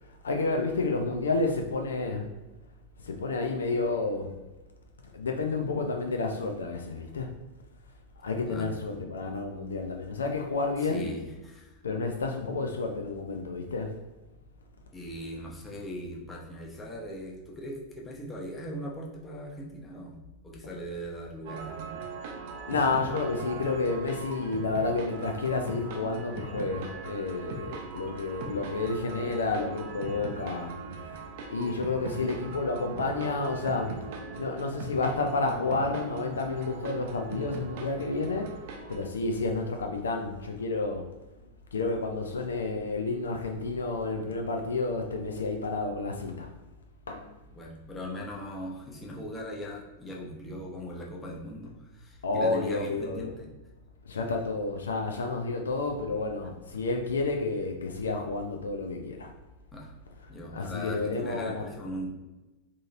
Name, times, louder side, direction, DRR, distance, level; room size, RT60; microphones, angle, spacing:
voice 1, 0.1-2.3 3.0-4.4 5.1-7.3 8.2-11.1 11.8-13.9 22.7-30.7 31.5-34.1 34.4-41.2 41.7-46.5 47.1-47.3 52.2-53.3 54.1-59.3 60.5-61.7, left 3 dB, 70° left, 3 dB, 0.3 m, -30 dB
voice 2, 10.8-11.8 14.9-20.2 20.4-21.9 47.5-53.5 59.7-59.9 60.3-62.1, equal, 15° left, -2 dB, 0.7 m, -39 dB
sound 1, 21.4-39.1, right 4 dB, 50° right, 0.5 m, -40 dB
3.7 x 2.9 x 2.5 m, 1.1 s
figure-of-eight pair, 90°, 0 cm